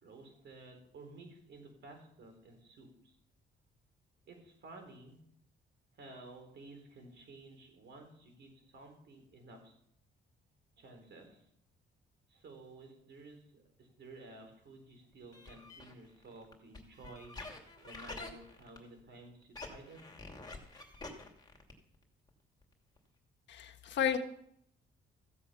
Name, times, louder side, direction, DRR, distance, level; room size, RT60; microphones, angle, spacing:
voice 1, 0.0-3.1 4.3-5.2 6.0-9.7 10.8-11.4 12.3-17.3 17.8-20.0, right 2 dB, 60° right, 4 dB, 4.2 m, -53 dB
sound 1, 15.3-19.1 19.4-21.9 22.3-22.4 22.6-22.7 23.0-23.1, left 3 dB, 20° left, 2.7 m, -48 dB
voice 2, 23.5-24.2, left 9 dB, 65° left, 4 dB, 1.5 m, -32 dB
15.0 x 8.0 x 5.8 m, 0.70 s
cardioid pair, 90°, 20 cm